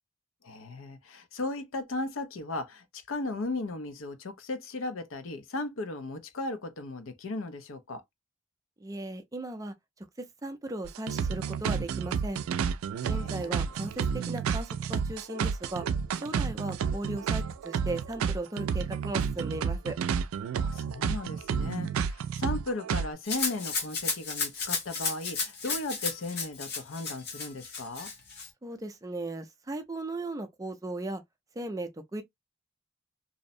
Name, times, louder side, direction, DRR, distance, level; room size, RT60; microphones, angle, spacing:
voice 1, 0.4-8.0 13.0-13.7 20.6-28.1, left 2 dB, 75° left, 0.5 m, -36 dB
voice 2, 8.8-9.7 10.2-12.4 13.1-15.9 16.2-20.0 28.6-31.2 31.6-32.2, right 2 dB, 15° right, 0.4 m, -37 dB
sound 1, 10.8-23.1, right 6 dB, 90° right, 0.3 m, -30 dB
Rattle (instrument), 23.3-28.5, left 4 dB, 50° left, 0.9 m, -33 dB
2.6 x 2.0 x 2.5 m
head